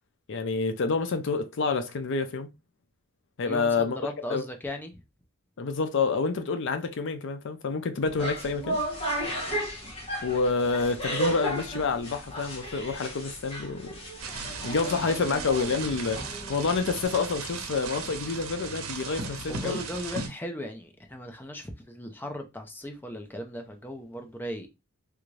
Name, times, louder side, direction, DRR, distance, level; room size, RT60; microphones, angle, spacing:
voice 1, 0.3-2.5 3.4-4.0 4.3-4.4 5.6-8.8 10.2-14.0 14.6-19.8, left 4 dB, 60° left, 0.5 m, -28 dB
voice 2, 3.5-5.0 19.5-24.7, left 1 dB, 10° left, 0.5 m, -37 dB
sound 1, 8.0-17.1, right 1 dB, 25° left, 1.1 m, -34 dB
sound 2, 14.2-20.3, right 4 dB, 75° right, 0.8 m, -37 dB
3.5 x 2.5 x 3.2 m
head